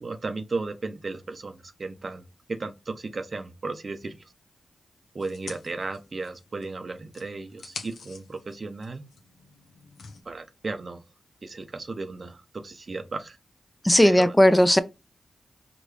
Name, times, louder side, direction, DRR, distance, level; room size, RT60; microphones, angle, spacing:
voice 1, 0.0-4.3 5.1-9.0 10.2-11.0 11.4-13.4 14.0-14.3, right 3 dB, 55° right, 0.7 m, -35 dB
sound 1, 5.2-6.7 7.1-10.2, left 4 dB, 85° left, 0.8 m, -45 dB
voice 2, 13.8-14.8, equal, 15° left, 0.6 m, -17 dB
4.8 x 2.6 x 3.2 m
cardioid pair, 45°, 0 cm